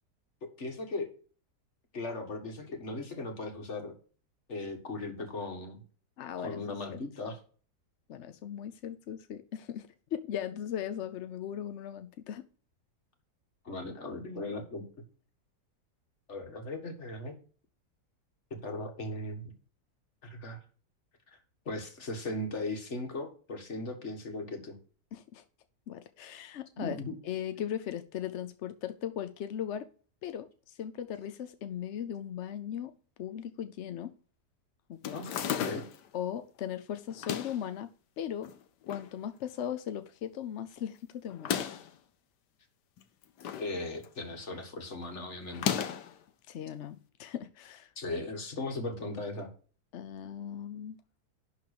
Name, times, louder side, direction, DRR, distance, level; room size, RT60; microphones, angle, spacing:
voice 1, 0.6-1.1 1.9-4.0 4.5-5.8 6.4-7.4 13.7-14.9 16.3-17.4 18.5-19.5 20.2-20.6 21.7-24.8 26.8-27.2 35.1-35.8 43.6-45.8 48.0-49.5, left 2 dB, 45° left, 5 dB, 1.9 m, -38 dB
voice 2, 6.2-6.6 6.9-7.0 8.1-12.4 25.1-25.4 25.9-27.0 27.2-29.9 30.2-32.9 33.2-34.1 34.9-35.2 36.1-37.9 38.2-38.5 38.9-41.5 46.5-47.9 49.9-51.0, left 9 dB, 65° left, 10 dB, 0.7 m, -38 dB
sound 1, 35.0-36.1 37.1-37.7 38.4-39.1 39.5-39.6 39.7-39.8 41.3-41.9 43.0-43.7 44.0-44.4 45.5-46.2, left 9 dB, 85° left, 1.4 m, -34 dB
11.0 x 3.9 x 6.5 m, 0.40 s
omnidirectional pair, 1.8 m